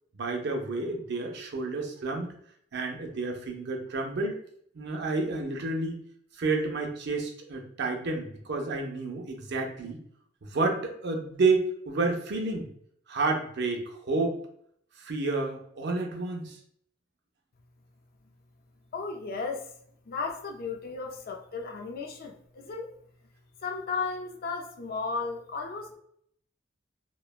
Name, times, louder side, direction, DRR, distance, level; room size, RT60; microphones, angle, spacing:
voice 1, 0.1-2.3 2.7-4.3 4.7-6.0 6.4-10.0 10.5-12.7 13.1-14.4 15.0-16.6, right 3 dB, 60° right, 2 dB, 0.6 m, -30 dB
voice 2, 18.9-19.7 20.1-22.9 23.6-26.0, left 4 dB, 50° left, 2 dB, 0.4 m, -34 dB
3.0 x 2.1 x 2.3 m, 0.65 s
head